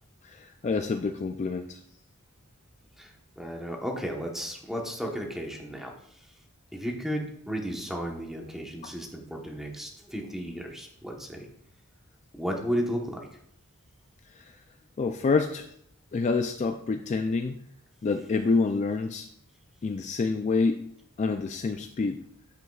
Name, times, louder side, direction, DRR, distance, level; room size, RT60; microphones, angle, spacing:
voice 1, 0.2-1.8 14.4-14.5 15.0-15.7 16.1-17.6 18.0-19.3 19.8-20.8 21.2-22.2, left 4 dB, 30° left, 6 dB, 0.3 m, -27 dB
voice 2, 3.0-6.3 6.7-11.5 12.3-13.3, equal, ahead, 1 dB, 1.0 m, -34 dB
9.3 x 7.7 x 2.3 m, 0.70 s
head